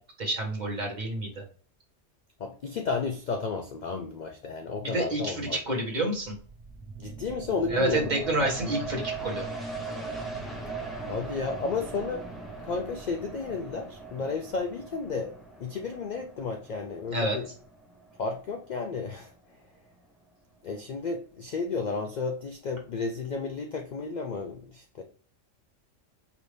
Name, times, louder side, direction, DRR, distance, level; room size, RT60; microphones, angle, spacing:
voice 1, 0.2-1.4 4.8-6.3 7.7-9.4 17.1-17.4, right 2 dB, 40° right, 0 dB, 1.1 m, -28 dB
voice 2, 2.4-5.6 7.0-8.0 11.1-12.2 12.6-17.5 18.2-19.3 20.6-25.0, left 4 dB, 65° left, 4 dB, 0.4 m, -32 dB
sound 1, 6.1-19.4 19.9-20.0, right 3 dB, ahead, 0.7 m, -40 dB
5.0 x 2.6 x 3.2 m, 0.43 s
omnidirectional pair, 1.3 m